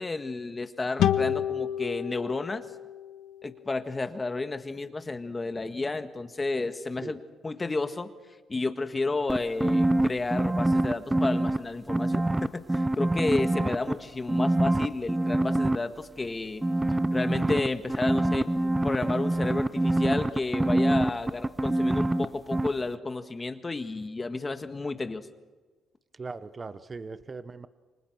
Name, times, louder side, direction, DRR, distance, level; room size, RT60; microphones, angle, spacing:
voice 1, 0.0-2.6 3.4-7.2 7.4-8.1 8.5-16.6 17.1-18.5 18.8-25.3, left 3 dB, 25° left, 8 dB, 1.7 m, -31 dB
sound 1, 1.0-4.4, left 9 dB, 80° left, 1.4 m, -30 dB
sound 2, 9.3-11.6 11.9-13.9 14.3-15.8 16.6-22.3 22.5-22.7, right 1 dB, 15° right, 0.8 m, -25 dB
voice 2, 26.1-27.7, right 4 dB, 30° right, 13 dB, 1.1 m, -40 dB
29.0 x 24.5 x 6.3 m, 1.3 s
cardioid pair, 90°, 0 cm